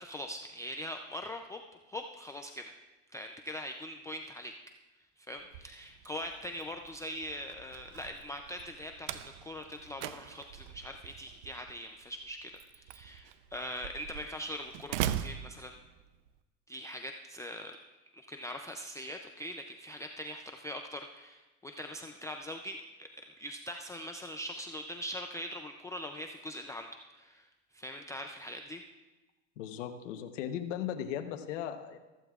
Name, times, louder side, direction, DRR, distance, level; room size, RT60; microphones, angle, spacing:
voice 1, 0.0-1.6 1.9-2.7 3.1-4.5 5.2-15.7 16.7-17.8 18.1-26.9 27.1-27.5 27.7-28.8, equal, 10° left, 4 dB, 0.4 m, -42 dB
Slam, 5.4-16.3, right 11 dB, 70° right, 0.7 m, -42 dB
voice 2, 29.6-32.0, left 10 dB, 85° left, 6 dB, 1.1 m, -37 dB
15.0 x 14.0 x 2.4 m, 1.1 s
supercardioid pair, 120°, 36 cm